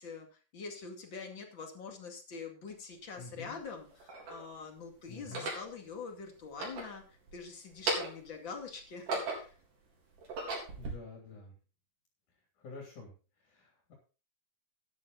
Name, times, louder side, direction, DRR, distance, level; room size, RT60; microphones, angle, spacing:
voice 1, 0.0-9.5, left 5 dB, 35° left, 3 dB, 2.7 m, -45 dB
sound 1, 2.7-2.8 3.6-4.4 5.2-5.7 6.4-7.4 7.7-8.3 8.8-9.6 10.1-10.9, right 3 dB, 65° right, 5.4 m, -37 dB
voice 2, 3.2-3.6 5.1-5.5 10.8-11.5 12.6-13.1 13.5-13.9, left 3 dB, 60° left, 0 dB, 4.4 m, -48 dB
13.0 x 10.5 x 4.1 m, 0.33 s
omnidirectional pair, 4.0 m